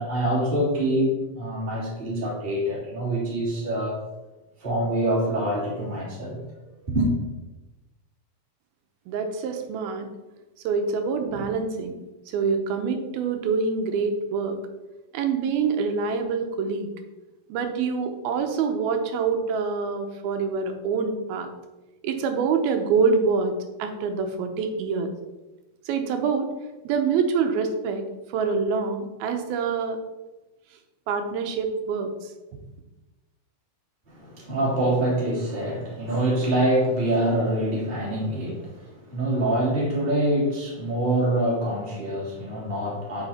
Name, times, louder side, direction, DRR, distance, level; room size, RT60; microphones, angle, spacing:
voice 1, 0.0-4.0 4.6-6.4 6.7-7.1 34.1-43.3, right 1 dB, 15° right, -5 dB, 2.5 m, -25 dB
voice 2, 9.1-10.1 10.6-11.9 12.3-14.6 15.1-16.9 17.5-21.5 22.0-23.5 23.8-25.1 25.9-26.5 26.8-28.0 28.3-30.0 31.1-32.3, right 5 dB, 85° right, 6 dB, 2.8 m, -25 dB
9.1 x 6.2 x 4.3 m, 1.1 s
omnidirectional pair, 4.3 m